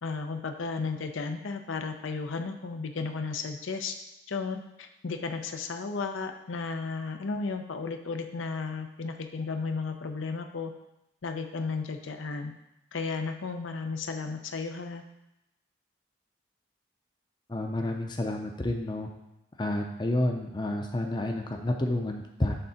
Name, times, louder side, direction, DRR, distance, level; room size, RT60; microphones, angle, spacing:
voice 1, 0.0-4.0 4.3-10.7 11.2-12.5 12.9-15.0, left 4 dB, 85° left, 6 dB, 0.6 m, -34 dB
voice 2, 17.5-19.1 19.6-22.6, left 1 dB, 20° left, 3 dB, 0.5 m, -30 dB
6.7 x 3.8 x 5.7 m, 0.90 s
head